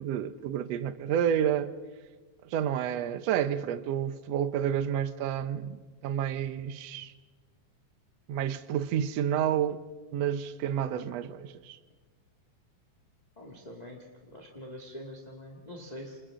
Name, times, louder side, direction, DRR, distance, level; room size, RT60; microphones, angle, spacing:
voice 1, 0.0-1.7 2.4-5.8 6.0-7.1 8.3-9.8 10.1-11.8, right 9 dB, 70° right, 1.8 m, -30 dB
voice 2, 13.3-16.2, left 1 dB, 15° left, 1.6 m, -45 dB
29.0 x 27.0 x 3.8 m
omnidirectional pair, 3.5 m